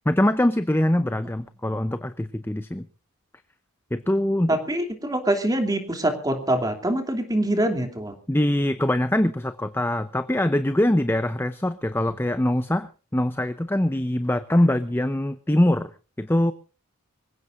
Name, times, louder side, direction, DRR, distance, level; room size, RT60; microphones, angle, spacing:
voice 1, 0.1-2.8 3.9-4.6 8.3-15.9 16.2-16.5, left 1 dB, 10° left, 11 dB, 0.6 m, -23 dB
voice 2, 4.5-8.2, right 1 dB, 15° right, 6 dB, 2.8 m, -24 dB
25.5 x 16.0 x 2.6 m, 0.35 s
head